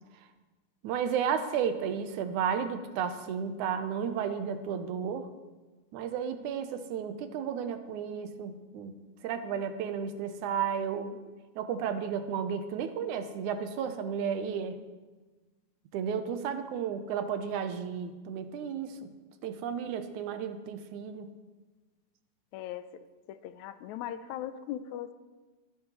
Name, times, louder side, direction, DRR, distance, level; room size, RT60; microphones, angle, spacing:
voice 1, 0.8-5.3 5.9-8.9 9.2-11.2 11.6-14.8 15.9-19.1 19.4-21.3, right 7 dB, 85° right, 9 dB, 2.3 m, -33 dB
voice 2, 22.5-22.8 23.3-25.1, left 11 dB, 80° left, 12 dB, 1.9 m, -39 dB
23.0 x 10.5 x 3.1 m, 1.3 s
omnidirectional pair, 3.4 m